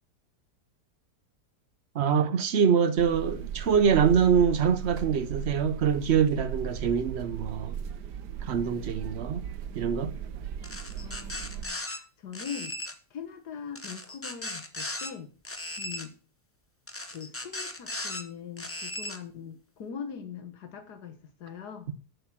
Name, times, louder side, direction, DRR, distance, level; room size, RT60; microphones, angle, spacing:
voice 1, 1.9-7.7 8.4-9.4 9.7-10.1, right 7 dB, 55° right, 0.8 m, -24 dB
sound 1, 3.0-11.7, right 8 dB, 80° right, 1.4 m, -37 dB
sound 2, 10.6-12.0 12.3-12.9 13.7-15.1 15.4-16.1 16.9-18.2 18.6-19.2, left 1 dB, 20° left, 0.4 m, -37 dB
voice 2, 10.8-12.8 13.1-15.3 15.8-16.1 17.1-21.9, left 7 dB, 75° left, 1.7 m, -42 dB
7.7 x 6.7 x 6.0 m
omnidirectional pair, 1.8 m